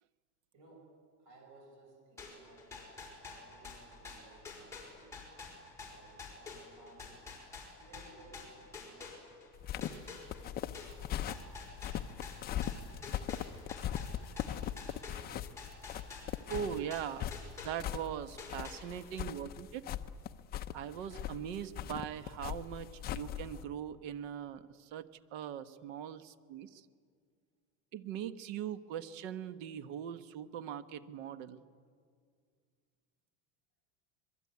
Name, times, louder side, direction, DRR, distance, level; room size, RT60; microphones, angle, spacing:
voice 1, 0.5-0.9 1.2-3.0 3.3-5.1 5.8-7.2 7.7-9.2 9.6-11.2, right 2 dB, 50° right, 1 dB, 6.6 m, -59 dB
sound 1, 2.2-9.5 9.8-18.1 18.4-19.2, left 4 dB, 5° left, 5.3 m, -48 dB
sound 2, 9.6-23.6, left 10 dB, 25° left, 0.6 m, -40 dB
voice 2, 16.5-17.3 17.6-19.9 20.7-26.8 27.9-31.6, right 9 dB, 75° right, 12 dB, 1.3 m, -41 dB
26.0 x 22.0 x 9.6 m, 2.1 s
cardioid pair, 175°, 38 cm